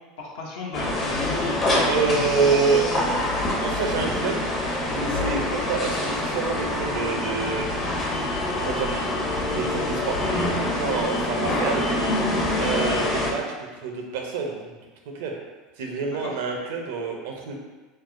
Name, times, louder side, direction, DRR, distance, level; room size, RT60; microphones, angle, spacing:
voice 1, 0.2-2.4 2.9-3.4 16.1-16.4, left 3 dB, 70° left, -3 dB, 0.8 m, -35 dB
sound 1, 0.7-13.3, left 1 dB, 35° left, 0.7 m, -25 dB
voice 2, 1.9-2.8 3.6-4.4 4.9-7.7 8.6-8.9 9.4-10.2 10.7-12.1 12.6-13.4 13.8-14.8 15.1-15.3 15.8-17.6, right 4 dB, 65° right, 1 dB, 0.5 m, -27 dB
4.5 x 2.0 x 2.4 m, 1.2 s
hypercardioid pair, 80°, 0 cm